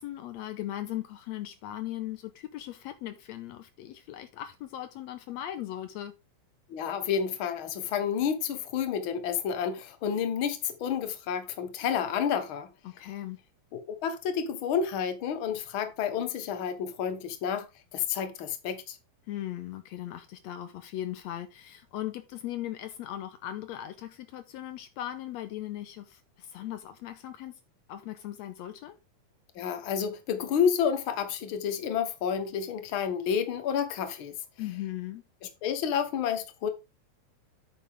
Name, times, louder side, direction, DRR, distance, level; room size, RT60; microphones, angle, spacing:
voice 1, 0.0-6.1 12.8-13.4 19.3-27.6 27.9-29.0 34.6-35.2, left 13 dB, 90° left, 1.5 m, -38 dB
voice 2, 6.7-12.7 13.7-17.7 17.9-19.0 29.5-34.3 35.6-36.7, left 7 dB, 55° left, 1.4 m, -30 dB
9.1 x 7.2 x 3.6 m
omnidirectional pair, 4.0 m